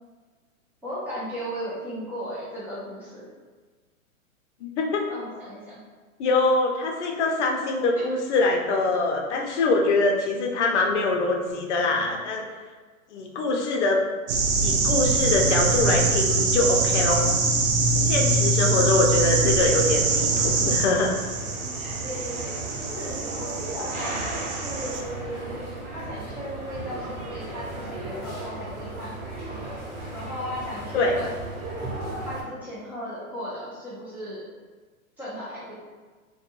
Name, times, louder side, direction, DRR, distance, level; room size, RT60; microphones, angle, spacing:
voice 1, 0.8-3.2 5.1-5.8 8.0-8.1 18.5-18.7 22.0-25.6 25.9-29.2 30.1-31.3 32.2-34.5 35.2-35.7, equal, 5° right, -11 dB, 0.5 m, -36 dB
voice 2, 4.6-5.1 6.2-12.4 13.1-14.0 14.6-17.3 18.1-21.2 30.9-31.2, left 3 dB, 55° left, 1 dB, 0.6 m, -24 dB
sound 1, 14.3-25.0, right 3 dB, 80° right, 0.6 m, -24 dB
sound 2, 19.7-32.4, right 2 dB, 40° right, 1.0 m, -36 dB
2.5 x 2.2 x 2.9 m, 1.4 s
hypercardioid pair, 130°, 42 cm